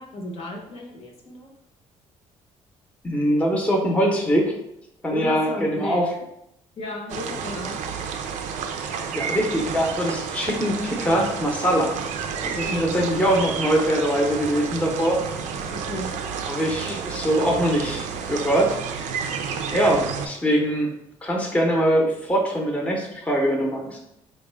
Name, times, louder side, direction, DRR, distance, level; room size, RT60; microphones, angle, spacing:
voice 1, 0.0-1.5 5.1-6.0 6.8-7.8 12.5-13.0 15.7-16.1 16.8-17.0 23.9-24.0, left 1 dB, 50° left, 1 dB, 0.8 m, -34 dB
voice 2, 3.0-4.5 5.0-6.0 9.1-11.9 12.4-15.2 16.5-18.8 19.7-20.9 21.2-23.9, equal, 10° left, 0 dB, 0.7 m, -22 dB
sound 1, 7.1-20.3, right 6 dB, 75° right, 0.4 m, -31 dB
3.4 x 2.2 x 3.3 m, 0.79 s
cardioid pair, 100°, 13 cm